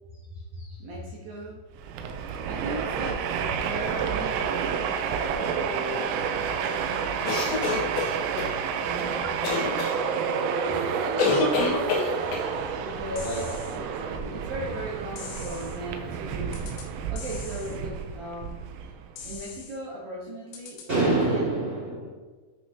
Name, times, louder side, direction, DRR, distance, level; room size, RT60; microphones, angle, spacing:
voice 1, 0.8-1.6 2.4-4.5 4.8-7.5 8.7-9.8 12.7-13.3 13.7-18.6 19.2-20.8 21.2-21.5, right 1 dB, 75° right, -4 dB, 2.2 m, -38 dB
Train, 1.8-19.4, right 6 dB, 90° right, 3.3 m, -30 dB
sound 1, 7.3-8.5 9.4-9.9 11.2-12.5, left 4 dB, 70° left, 3.3 m, -26 dB
sound 2, 13.2-13.8 15.2-15.8 16.5-16.9 17.2-17.8 19.2-19.8 20.5-20.9, left 6 dB, 90° left, 3.8 m, -42 dB
voice 2, 20.9-22.1, right 2 dB, 45° right, -9 dB, 1.4 m, -26 dB
10.0 x 6.2 x 2.8 m, 1.4 s
omnidirectional pair, 5.8 m